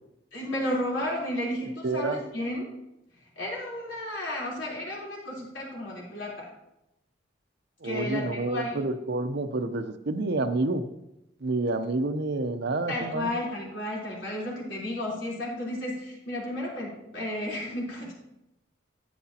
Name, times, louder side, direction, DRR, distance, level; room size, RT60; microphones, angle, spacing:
voice 1, 0.3-2.7 3.4-6.5 7.8-8.9 12.9-18.1, left 1 dB, 75° left, -4 dB, 3.8 m, -33 dB
voice 2, 1.8-2.2 7.8-10.8 11.4-13.3, right 2 dB, 60° right, 10 dB, 0.7 m, -28 dB
11.5 x 9.3 x 2.9 m, 0.88 s
head